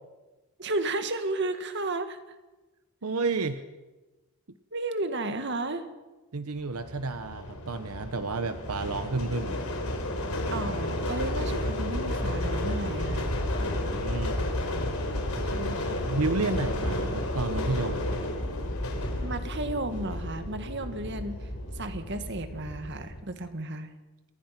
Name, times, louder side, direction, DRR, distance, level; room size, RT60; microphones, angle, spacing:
voice 1, 0.6-2.4 4.7-5.9 10.5-13.3 15.4-15.9 19.2-23.9, right 2 dB, 55° right, 8 dB, 1.9 m, -33 dB
voice 2, 3.0-3.6 6.3-9.6 13.6-14.4 15.4-15.6 16.0-18.1, right 3 dB, 85° right, 10 dB, 1.0 m, -31 dB
sound 1, 6.7-23.2, left 1 dB, 75° left, 4.2 m, -31 dB
27.5 x 20.0 x 6.0 m, 1.1 s
head